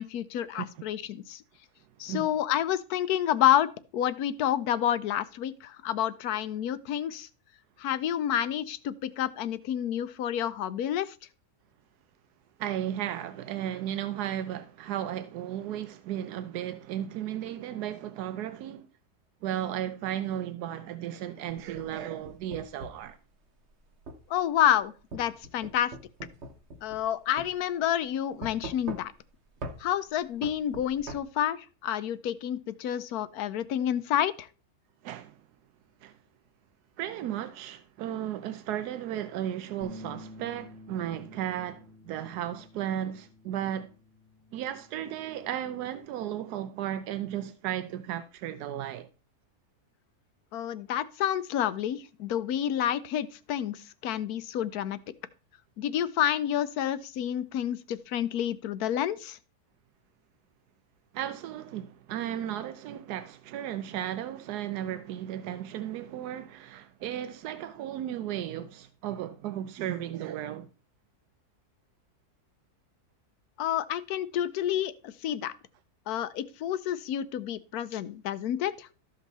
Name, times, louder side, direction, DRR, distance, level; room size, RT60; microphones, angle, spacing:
voice 1, 0.0-1.4 2.0-7.3 7.8-11.1 24.3-25.9 26.8-29.1 29.8-34.5 50.5-55.0 55.8-59.4 73.6-75.5 76.1-78.9, left 11 dB, 80° left, 1.1 m, -29 dB
voice 2, 12.6-18.9 19.4-23.2 35.0-35.3 36.0-36.1 37.0-43.9 44.5-49.1 61.1-70.7, right 11 dB, 90° right, 1.2 m, -35 dB
sound 1, 21.6-23.1 24.1-24.2 25.1-27.1 27.4-27.5 28.4-29.3 29.6-29.8 30.4-31.2, right 2 dB, 50° right, 1.2 m, -41 dB
sound 2, 39.8-46.1, left 2 dB, 15° left, 0.9 m, -50 dB
13.5 x 5.4 x 4.1 m
omnidirectional pair, 1.6 m